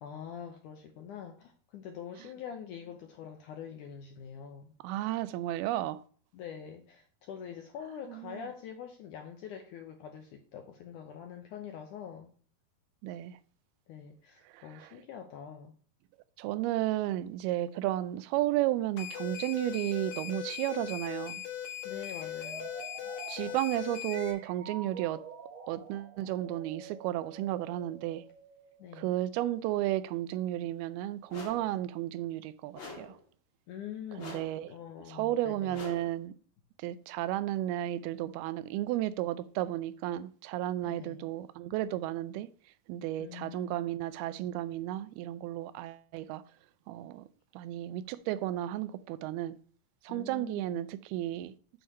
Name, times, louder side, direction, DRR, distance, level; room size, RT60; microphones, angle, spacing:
voice 1, 0.0-4.7 6.3-12.4 13.9-15.7 21.8-23.1 23.5-23.6 28.8-29.1 33.7-34.4 34.7-35.8 40.8-41.3 43.2-44.0 50.1-50.9, left 8 dB, 80° left, 1.8 m, -45 dB
voice 2, 4.8-6.0 8.1-8.5 13.0-13.4 14.5-14.9 16.4-21.4 23.3-25.2 25.7-28.2 28.9-33.2 34.2-34.7 35.1-36.3 36.8-42.5 42.9-46.4 46.9-47.3 47.5-49.6 50.0-51.5, right 14 dB, 85° right, 2.4 m, -33 dB
sound 1, 19.0-24.3, left 10 dB, 55° left, 2.7 m, -39 dB
sound 2, 22.3-29.0, right 5 dB, 55° right, 2.0 m, -48 dB
sound 3, 31.3-31.8 32.7-33.2 34.2-34.7 35.7-36.2, left 4 dB, 40° left, 2.0 m, -45 dB
7.8 x 4.7 x 6.5 m
omnidirectional pair, 4.6 m